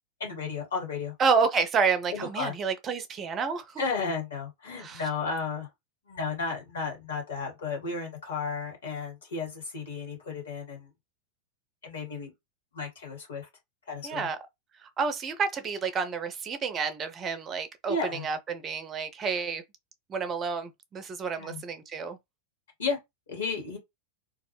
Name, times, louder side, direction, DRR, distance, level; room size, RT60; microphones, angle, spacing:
voice 1, 0.2-1.1 2.1-2.5 3.8-5.7 6.1-10.9 11.8-12.3 12.7-13.5 13.9-14.3 17.9-18.2 21.4-21.6 22.8-23.0 23.3-23.8, left 4 dB, 65° left, 1.2 m, -33 dB
voice 2, 1.2-3.8 4.8-5.0 14.0-14.4 14.8-19.6 20.1-22.2, right 5 dB, 25° right, 0.5 m, -29 dB
2.3 x 2.0 x 2.9 m
figure-of-eight pair, 90°, 0 cm